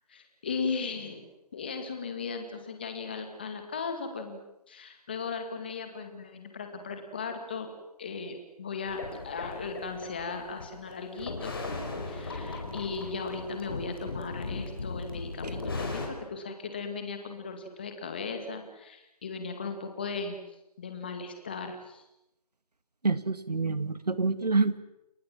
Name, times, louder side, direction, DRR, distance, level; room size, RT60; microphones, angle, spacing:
voice 1, 0.1-1.3 1.5-4.4 4.7-7.7 8.0-11.5 12.1-20.4 20.8-22.0, left 4 dB, 15° left, 6 dB, 2.0 m, -37 dB
sound 1, 8.9-16.1, left 3 dB, 35° left, 4.9 m, -37 dB
voice 2, 23.0-24.8, right 3 dB, 80° right, 13 dB, 2.1 m, -27 dB
29.5 x 20.5 x 7.6 m, 0.90 s
figure-of-eight pair, 175°, 20 cm